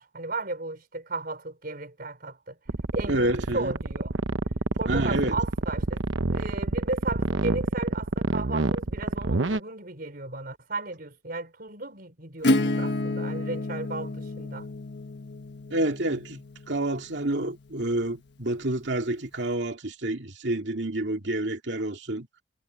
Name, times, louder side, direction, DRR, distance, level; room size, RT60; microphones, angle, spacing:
voice 1, 0.0-2.6 2.9-4.1 4.8-6.0 6.3-14.7, right 3 dB, 50° right, 4.6 m, -35 dB
sound 1, 2.7-9.6, right 2 dB, 85° right, 1.0 m, -27 dB
voice 2, 3.1-3.7 4.9-5.4 15.7-22.3, right 1 dB, 65° right, 2.4 m, -28 dB
Acoustic guitar / Strum, 12.4-17.9, left 1 dB, 65° left, 1.4 m, -30 dB
head